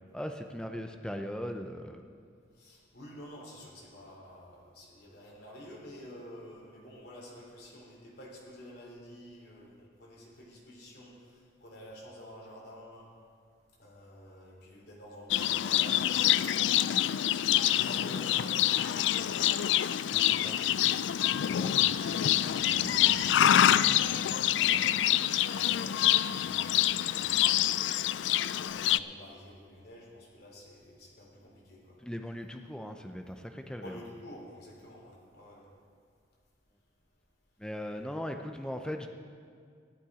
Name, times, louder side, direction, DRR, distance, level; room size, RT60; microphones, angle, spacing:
voice 1, 0.1-2.0 20.1-20.7 21.5-21.8 32.0-34.1 37.6-39.1, equal, 5° left, 5 dB, 0.5 m, -39 dB
voice 2, 2.6-13.1 13.8-16.7 17.3-19.7 21.3-25.0 25.3-27.6 28.0-32.0 33.8-35.7, equal, 55° left, -3 dB, 3.6 m, -50 dB
Livestock farm animals working animals, 15.3-29.0, left 12 dB, 70° left, 0.3 m, -26 dB
sound 1, 20.0-25.6, right 1 dB, 75° right, 1.3 m, -51 dB
14.5 x 11.5 x 5.0 m, 2.2 s
head